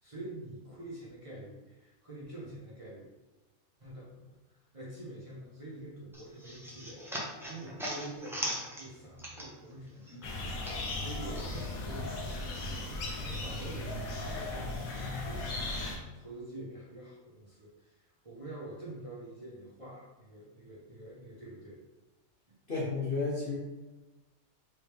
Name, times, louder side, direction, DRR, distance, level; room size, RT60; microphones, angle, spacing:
voice 1, 0.0-3.1 3.8-21.8, right 1 dB, 25° right, -8 dB, 1.0 m, -47 dB
sound 1, 6.1-9.8 10.1-11.5, equal, 5° right, 0.4 m, -39 dB
sound 2, 10.2-16.0, left 2 dB, 75° left, 1.2 m, -37 dB
voice 2, 22.7-23.6, left 3 dB, 45° left, -5 dB, 1.0 m, -32 dB
4.4 x 3.2 x 3.4 m, 1.1 s
omnidirectional pair, 1.5 m